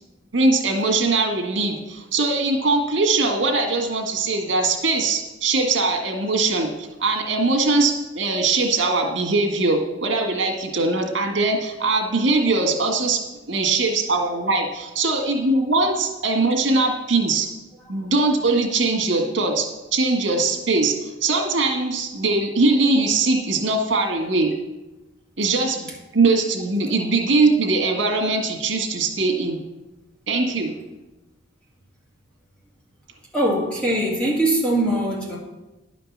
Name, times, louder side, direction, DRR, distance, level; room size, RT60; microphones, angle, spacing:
voice 1, 0.3-13.2 13.5-17.5 17.9-24.5 25.4-29.6 30.3-30.7, right 3 dB, 85° right, 3 dB, 1.8 m, -21 dB
voice 2, 33.3-35.4, right 1 dB, 5° left, -4 dB, 2.2 m, -22 dB
10.5 x 5.1 x 7.3 m, 1.0 s
head